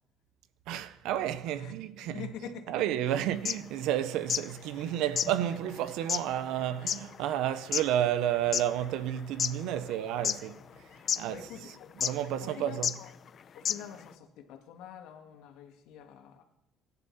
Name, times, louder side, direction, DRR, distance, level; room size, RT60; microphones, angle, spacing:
voice 1, 0.7-2.3 2.7-10.6 11.2-11.7 12.0-13.0, right 11 dB, 85° right, 0.8 m, -31 dB
voice 2, 2.0-2.7 3.0-3.3 9.7-9.9 11.3-11.9 12.4-13.1 13.5-16.4, left 7 dB, 85° left, 2.2 m, -46 dB
sound 1, 3.3-4.5 4.8-4.9 5.1-8.7 9.2-9.9 10.2-10.8 11.1-11.2 12.0-12.3 12.8-13.0 13.3-13.4 13.6-14.0, left 8 dB, 45° left, 0.7 m, -31 dB
24.5 x 11.0 x 4.3 m
cardioid pair, 130°, 0 cm